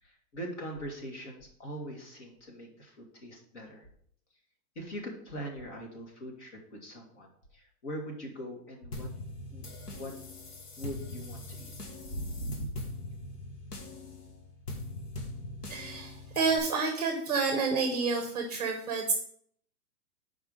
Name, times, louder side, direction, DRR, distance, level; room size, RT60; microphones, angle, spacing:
voice 1, 0.0-3.9 4.8-9.1 9.5-9.6 9.9-10.1 10.8-11.7 12.0-12.8, equal, 45° left, 1 dB, 2.0 m, -41 dB
sound 1, 8.9-16.6, left 2 dB, 75° left, 1.8 m, -42 dB
voice 2, 15.7-19.1, right 4 dB, 25° right, 3 dB, 0.8 m, -29 dB
5.7 x 4.8 x 6.5 m, 0.64 s
hypercardioid pair, 180°, 46 cm